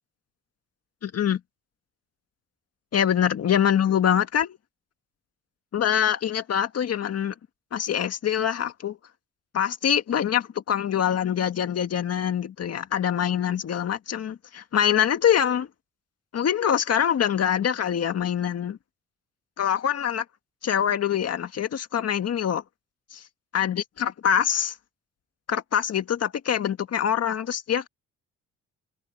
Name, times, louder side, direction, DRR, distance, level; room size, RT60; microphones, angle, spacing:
voice 1, 1.0-1.4 2.9-4.5 5.7-7.3 7.7-9.0 9.5-15.7 16.3-18.8 19.6-20.2 20.6-22.6 23.1-23.2 23.5-24.7 25.5-27.9, left 9 dB, 55° left, 1.9 m, -24 dB
cardioid pair, 90°, 30 cm